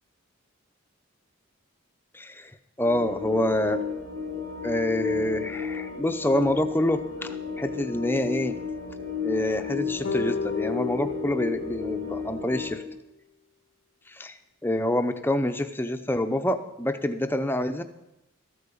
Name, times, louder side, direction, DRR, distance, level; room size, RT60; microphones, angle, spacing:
voice 1, 2.1-3.8 4.6-8.6 9.2-12.8 14.1-17.8, left 1 dB, 10° left, 8 dB, 0.6 m, -27 dB
sound 1, 2.8-12.8, left 6 dB, 85° right, 3.1 m, -33 dB
sound 2, 10.0-12.6, left 5 dB, 75° left, 0.8 m, -33 dB
14.0 x 8.7 x 6.9 m, 0.90 s
head